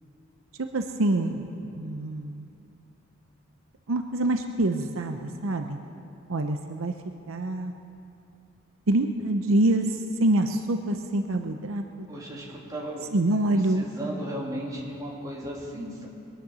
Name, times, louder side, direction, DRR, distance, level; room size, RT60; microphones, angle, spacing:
voice 1, 0.6-2.5 3.9-5.8 6.3-6.9 7.3-7.7 8.9-12.1 13.1-13.8, right 1 dB, 70° right, 5 dB, 0.7 m, -26 dB
voice 2, 12.1-13.1 13.5-16.1, right 1 dB, 15° right, -5 dB, 2.7 m, -36 dB
22.0 x 10.0 x 6.3 m, 2.7 s
head